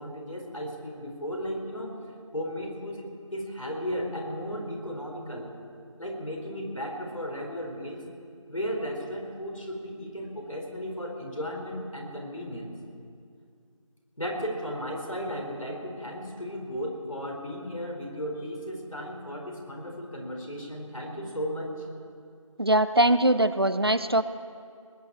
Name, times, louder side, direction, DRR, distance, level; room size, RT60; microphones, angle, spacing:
voice 1, 0.0-2.0 2.3-5.5 6.0-8.0 8.5-12.8 14.2-21.7, equal, 75° left, 1 dB, 3.9 m, -35 dB
voice 2, 22.6-24.2, right 1 dB, 45° right, 14 dB, 0.5 m, -22 dB
20.0 x 7.0 x 8.6 m, 2.3 s
figure-of-eight pair, 170°, 17 cm